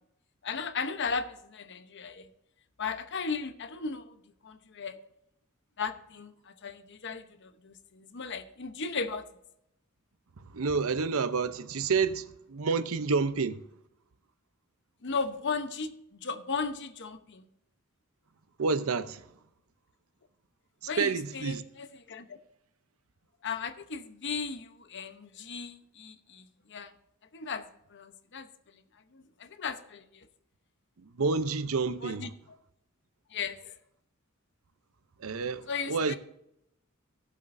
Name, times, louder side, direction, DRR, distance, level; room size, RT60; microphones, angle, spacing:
voice 1, 0.4-2.3 2.8-4.1 4.4-5.0 5.8-9.3 15.0-17.5 20.9-22.4 23.4-26.9 27.3-28.5 28.7-28.8 29.1-30.3 32.0-32.3 33.3-33.8 35.7-36.2, left 5 dB, 55° left, 0.9 m, -36 dB
voice 2, 10.5-13.6 18.6-19.3 21.0-21.6 31.0-32.3 35.2-36.2, right 4 dB, 85° right, 0.7 m, -29 dB
17.0 x 7.4 x 2.6 m
head